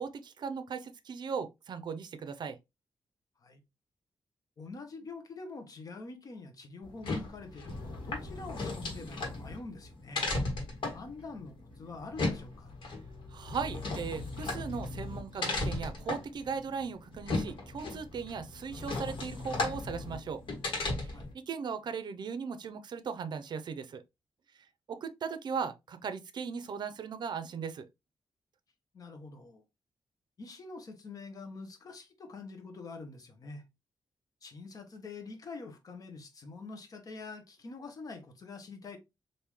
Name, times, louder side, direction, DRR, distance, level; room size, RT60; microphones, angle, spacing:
voice 1, 0.0-2.6 13.3-20.4 21.0-24.0 24.9-27.9, right 6 dB, 60° right, 0.5 m, -38 dB
voice 2, 4.6-10.3 10.9-12.7 21.1-21.3 28.9-29.6 30.4-33.6 34.4-39.0, left 3 dB, 45° left, 0.9 m, -45 dB
sound 1, 6.8-21.3, left 2 dB, 75° left, 1.4 m, -36 dB
3.6 x 2.6 x 3.0 m
wide cardioid pair, 140°, 9 cm